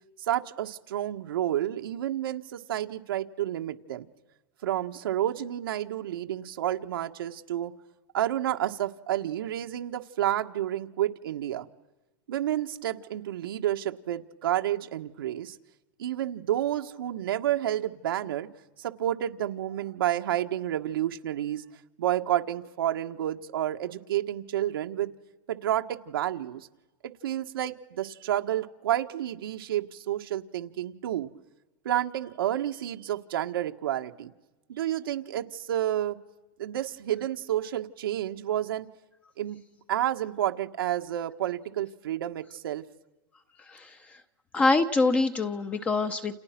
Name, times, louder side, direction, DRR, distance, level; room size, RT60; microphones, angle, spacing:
voice 1, 0.3-4.1 4.6-7.7 8.1-11.7 12.3-15.5 16.0-18.5 18.8-21.6 22.0-25.1 25.5-26.7 27.0-31.3 31.8-34.3 34.7-36.2 36.6-38.9 39.4-39.6 39.9-42.8, right 12 dB, 85° right, 5 dB, 1.7 m, -30 dB
voice 2, 43.7-44.2 44.5-46.3, left 3 dB, 10° left, 9 dB, 0.8 m, -25 dB
29.5 x 28.5 x 6.1 m, 1.1 s
supercardioid pair, 170°, 12 cm